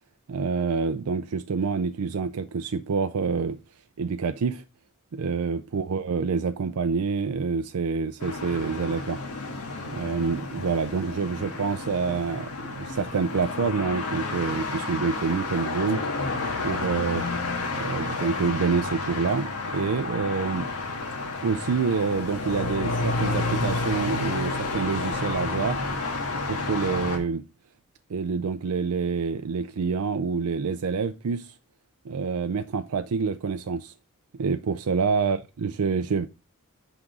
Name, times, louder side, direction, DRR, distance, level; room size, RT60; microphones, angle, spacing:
voice 1, 0.3-3.6 4.0-4.6 5.1-9.2 9.9-16.0 16.6-17.2 17.7-20.7 21.4-25.8 26.5-27.4 28.1-31.5 32.1-33.9 34.4-36.3, right 5 dB, 85° right, 0.5 m, -27 dB
sound 1, 8.2-27.2, left 3 dB, 85° left, 1.7 m, -30 dB
6.1 x 5.1 x 4.7 m
head